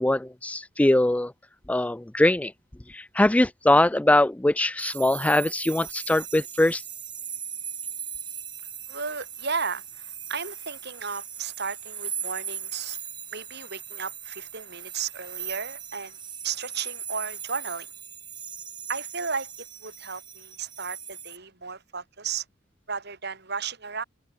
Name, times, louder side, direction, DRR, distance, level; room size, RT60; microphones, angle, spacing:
voice 1, 0.0-1.3 1.7-2.5 2.9-6.8, left 1 dB, 5° left, 0.3 m, -22 dB
sound 1, 4.8-21.4, right 8 dB, 25° right, 2.0 m, -38 dB
voice 2, 8.9-13.0 13.3-16.2 16.4-17.9 18.9-19.5 19.8-22.4 22.9-24.0, right 5 dB, 55° right, 6.5 m, -34 dB
head